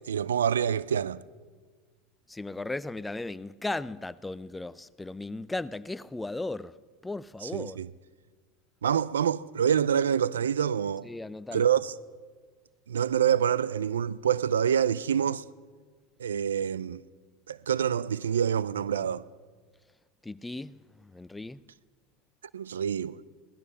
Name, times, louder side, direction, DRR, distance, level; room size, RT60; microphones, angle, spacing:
voice 1, 0.1-1.2 7.4-7.9 8.8-11.1 11.5-11.9 12.9-15.4 16.2-17.0 17.5-19.2 22.5-23.2, right 8 dB, 85° right, 0.4 m, -26 dB
voice 2, 2.3-6.7 7.0-7.8 11.0-11.7 20.2-21.6, left 2 dB, 10° left, 0.5 m, -36 dB
17.0 x 12.5 x 6.8 m
hypercardioid pair, 90°, 0 cm